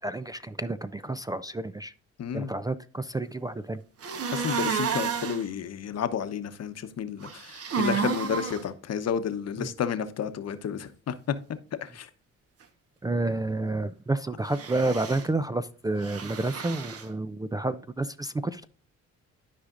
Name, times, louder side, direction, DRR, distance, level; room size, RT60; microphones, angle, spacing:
voice 1, 0.0-1.9 2.3-3.8 9.6-9.7 13.0-18.6, right 2 dB, 15° right, 13 dB, 0.4 m, -30 dB
voice 2, 2.2-2.5 4.3-11.3 11.8-12.1, left 8 dB, 55° left, 10 dB, 1.0 m, -31 dB
sound 1, 4.0-5.4 7.2-8.6 14.5-15.3 16.0-17.0, right 6 dB, 50° right, 1.2 m, -31 dB
13.0 x 5.0 x 2.5 m, 0.42 s
cardioid pair, 90°, 30 cm